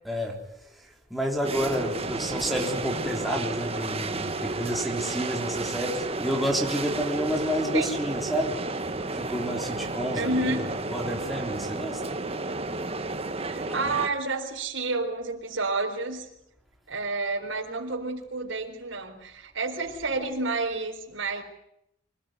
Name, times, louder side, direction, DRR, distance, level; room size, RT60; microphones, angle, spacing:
voice 1, 0.0-0.4 0.7-8.6 9.1-12.0, equal, ahead, 3.7 m, -30 dB
sound 1, 1.4-14.1, right 3 dB, 30° right, 1.5 m, -32 dB
voice 2, 10.2-10.7 13.4-16.3 16.9-21.4, right 3 dB, 75° right, 4.1 m, -30 dB
25.0 x 19.0 x 9.4 m
head